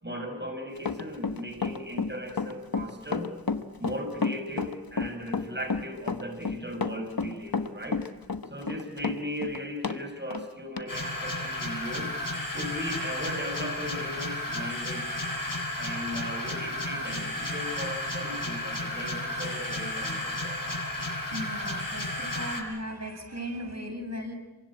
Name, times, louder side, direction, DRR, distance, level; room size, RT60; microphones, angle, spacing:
voice 1, 0.0-3.3 3.8-8.0 8.5-12.1 12.5-15.1 15.8-20.6, equal, 30° right, 5 dB, 6.3 m, -37 dB
Run, 0.8-10.0 10.3-10.4 10.8-10.9, left 4 dB, 85° left, 1.3 m, -30 dB
sound 1, 10.9-22.6, left 1 dB, 65° left, 7.8 m, -33 dB
voice 2, 21.3-24.3, equal, 50° right, 3 dB, 7.2 m, -37 dB
28.0 x 24.5 x 8.8 m, 1.1 s
wide cardioid pair, 45°, 35 cm